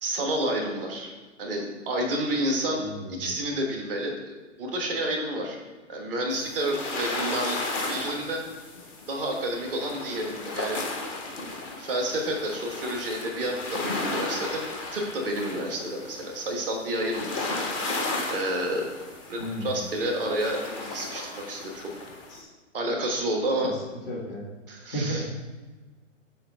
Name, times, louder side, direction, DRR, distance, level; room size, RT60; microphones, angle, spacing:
voice 1, 0.0-1.1 1.4-5.6 5.9-7.6 7.9-8.4 9.1-10.8 11.8-17.5 17.8-18.9 19.3-21.9 22.7-23.7 24.7-25.3, right 1 dB, 5° left, 1 dB, 0.4 m, -30 dB
voice 2, 2.8-3.2 19.4-19.8 22.3-22.5 24.1-24.4 24.9-25.3, right 1 dB, 40° left, -7 dB, 1.7 m, -33 dB
sound 1, 6.3-22.4, left 2 dB, 25° left, 0.7 m, -35 dB
5.9 x 4.3 x 5.0 m, 1.3 s
figure-of-eight pair, 130°, 38 cm